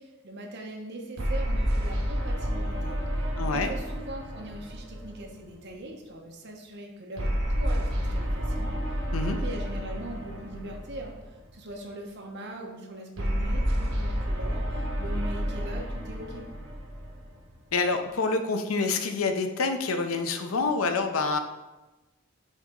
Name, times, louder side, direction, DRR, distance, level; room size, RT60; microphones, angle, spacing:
voice 1, 0.0-8.8 9.2-11.1 11.5-16.5, right 1 dB, 55° right, 1 dB, 1.0 m, -41 dB
sound 1, 1.2-5.7 7.2-11.5 13.2-17.7, equal, 80° right, 1.2 m, -30 dB
voice 2, 3.4-3.7 9.1-9.4 17.7-21.4, left 3 dB, 85° left, 6 dB, 0.6 m, -27 dB
6.2 x 4.1 x 3.8 m, 1.1 s
head